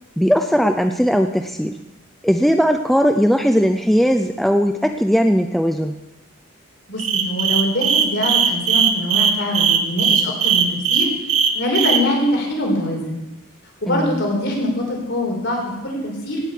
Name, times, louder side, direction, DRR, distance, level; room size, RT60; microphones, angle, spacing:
voice 1, 0.2-1.7 2.2-6.0 13.9-14.2, equal, ahead, 6 dB, 0.5 m, -18 dB
voice 2, 6.9-11.1 11.5-13.2 13.8-16.4, left 1 dB, 55° left, 0 dB, 4.9 m, -23 dB
sound 1, 7.0-12.0, right 7 dB, 85° right, 1.5 m, -17 dB
17.5 x 7.9 x 8.5 m, 0.99 s
head